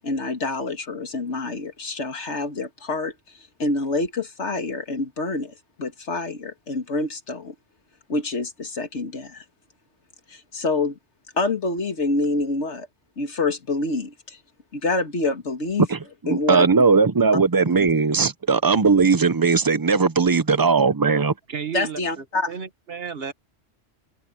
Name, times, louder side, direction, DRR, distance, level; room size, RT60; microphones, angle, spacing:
voice 1, 0.0-3.1 3.6-7.5 8.1-9.4 10.3-11.0 11.3-12.9 13.2-14.4 14.7-15.9 16.3-16.9 17.7-17.9 21.7-22.5, left 3 dB, 85° left, 2.3 m, -27 dB
voice 2, 15.9-21.3, right 4 dB, 25° right, 0.6 m, -19 dB
voice 3, 21.5-23.3, right 7 dB, 60° right, 1.7 m, -33 dB
omnidirectional pair, 1.1 m